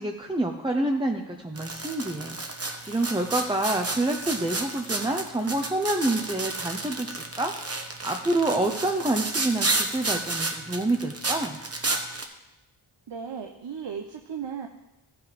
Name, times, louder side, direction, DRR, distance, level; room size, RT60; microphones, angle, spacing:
voice 1, 0.0-11.6, right 2 dB, 10° right, 3 dB, 0.8 m, -28 dB
sound 1, 1.6-12.2, right 2 dB, 30° right, 1.3 m, -31 dB
voice 2, 13.1-14.7, right 7 dB, 60° right, 4 dB, 0.9 m, -35 dB
14.5 x 6.1 x 5.1 m, 0.97 s
cardioid pair, 65°, 48 cm